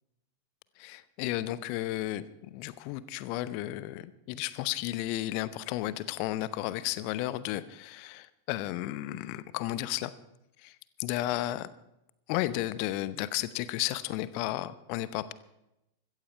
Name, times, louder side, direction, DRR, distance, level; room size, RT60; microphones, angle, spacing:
voice 1, 0.8-10.1 10.6-11.7 12.3-15.3, left 15 dB, 45° left, 17 dB, 0.8 m, -33 dB
16.0 x 14.0 x 4.6 m, 0.88 s
figure-of-eight pair, 90°, 0 cm